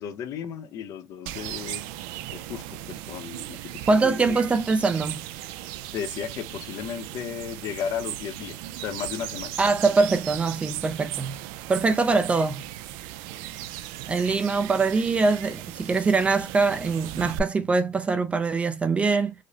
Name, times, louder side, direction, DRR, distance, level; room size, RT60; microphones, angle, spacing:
voice 1, 0.0-1.8 2.3-4.4 5.9-9.5, left 8 dB, 50° left, 0.6 m, -35 dB
sound 1, 1.3-17.4, right 14 dB, 90° right, 0.4 m, -37 dB
voice 2, 3.9-5.2 9.6-11.4 11.7-12.6 14.1-19.3, right 4 dB, 15° right, 0.3 m, -23 dB
5.0 x 2.0 x 2.7 m
cardioid pair, 160°, 7 cm